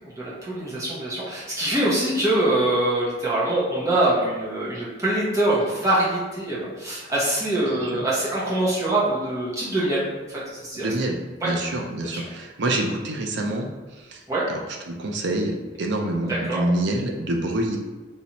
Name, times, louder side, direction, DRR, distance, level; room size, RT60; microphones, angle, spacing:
voice 1, 0.0-10.9 12.1-12.3 14.3-14.5 16.3-16.6, right 1 dB, 15° right, -7 dB, 0.9 m, -24 dB
voice 2, 7.7-8.0 10.7-11.2 11.4-13.7 14.0-14.2 14.5-17.8, right 1 dB, 65° right, 2 dB, 0.5 m, -27 dB
3.1 x 2.8 x 2.9 m, 1.3 s
head